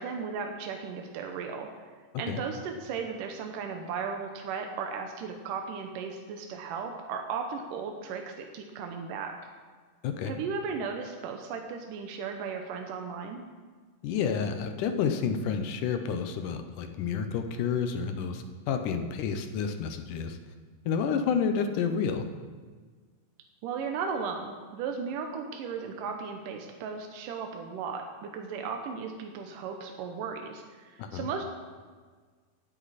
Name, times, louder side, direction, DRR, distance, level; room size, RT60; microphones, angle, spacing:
voice 1, 0.0-1.8 2.2-9.3 10.3-13.4 23.6-31.4, right 5 dB, 80° right, 3 dB, 2.5 m, -36 dB
voice 2, 14.0-20.4 20.9-22.2 31.0-31.3, left 6 dB, 75° left, 7 dB, 2.4 m, -30 dB
18.0 x 10.0 x 4.2 m, 1.5 s
omnidirectional pair, 3.8 m